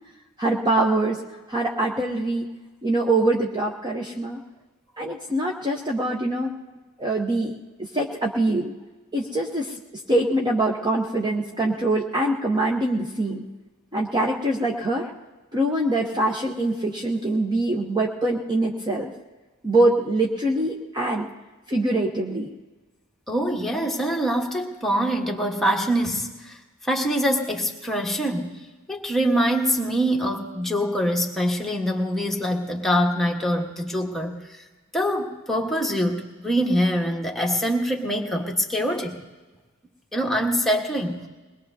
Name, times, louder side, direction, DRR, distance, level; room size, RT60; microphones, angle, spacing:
voice 1, 0.4-1.2 1.5-2.5 2.8-4.4 5.0-6.5 7.0-7.5 7.9-8.7 9.1-9.7 10.1-13.4 13.9-15.1 15.5-19.1 19.6-21.3 21.7-22.5, right 2 dB, 20° right, 0 dB, 0.8 m, -23 dB
voice 2, 23.3-28.6 28.9-34.6 34.9-39.2 40.1-41.3, equal, ahead, 0 dB, 1.3 m, -24 dB
22.0 x 20.0 x 2.7 m, 1.2 s
head